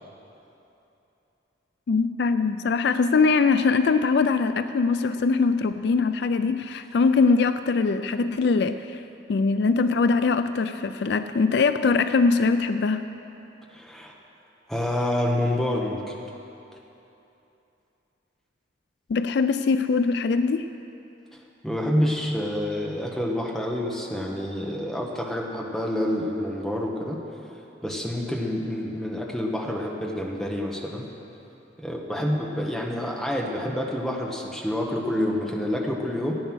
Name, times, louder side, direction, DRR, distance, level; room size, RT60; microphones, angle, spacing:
voice 1, 1.9-9.0 9.3-13.1 19.1-20.7, left 4 dB, 60° left, 10 dB, 0.4 m, -22 dB
voice 2, 13.7-14.1 14.7-16.1 21.6-27.2 27.8-31.1 31.8-36.4, left 1 dB, ahead, -2 dB, 1.2 m, -28 dB
15.0 x 9.2 x 6.2 m, 2.9 s
head